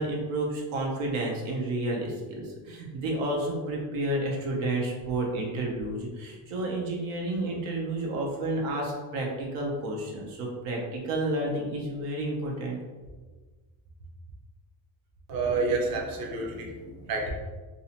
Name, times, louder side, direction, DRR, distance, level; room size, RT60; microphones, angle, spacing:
voice 1, 0.0-12.8, right 1 dB, 85° right, -1 dB, 0.7 m, -31 dB
voice 2, 15.3-17.3, right 3 dB, 45° right, 0 dB, 0.6 m, -29 dB
2.5 x 2.1 x 2.7 m, 1.3 s
cardioid pair, 105°, 48 cm